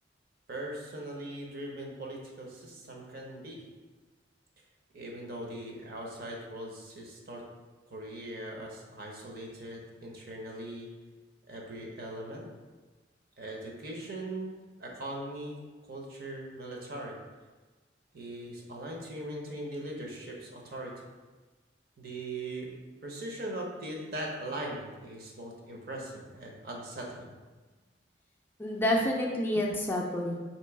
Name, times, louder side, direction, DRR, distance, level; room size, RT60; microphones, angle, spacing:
voice 1, 0.5-3.6 4.9-7.4 7.9-10.9 11.5-12.5 13.4-14.5 14.8-15.6 15.9-17.2 18.1-20.9 22.0-22.7 23.0-27.3, right 1 dB, 55° right, -1 dB, 0.8 m, -40 dB
voice 2, 28.6-30.4, left 1 dB, 10° left, -2 dB, 0.4 m, -28 dB
3.0 x 3.0 x 4.6 m, 1.3 s
head